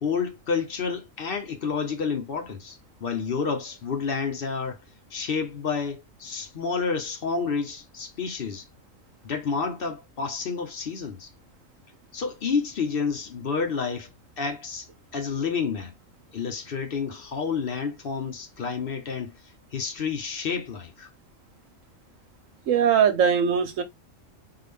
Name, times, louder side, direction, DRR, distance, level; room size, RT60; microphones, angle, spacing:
voice 1, 0.0-4.8 5.1-8.6 9.2-11.3 12.1-14.1 14.4-14.9 15.1-15.9 16.3-19.3 19.7-21.1, left 5 dB, 55° left, 0.8 m, -29 dB
voice 2, 22.7-23.8, right 7 dB, 85° right, 1.2 m, -20 dB
3.7 x 2.4 x 3.4 m
omnidirectional pair, 1.3 m